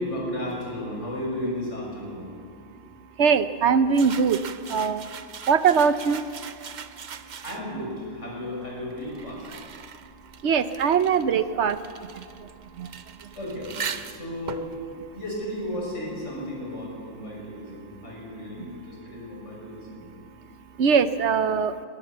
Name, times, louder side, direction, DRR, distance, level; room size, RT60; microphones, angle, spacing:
voice 1, 0.0-2.3 7.4-9.5 13.4-14.8 15.1-20.0, left 1 dB, 65° left, -2 dB, 6.4 m, -34 dB
voice 2, 3.2-4.4 4.7-5.0 5.5-6.2 10.4-11.8 12.8-12.9 20.8-21.7, right 6 dB, 65° right, 12 dB, 1.0 m, -21 dB
sound 1, 3.9-7.9 8.7-16.1, right 7 dB, 45° right, 0.7 m, -40 dB
20.5 x 18.0 x 7.5 m, 2.2 s
omnidirectional pair, 1.3 m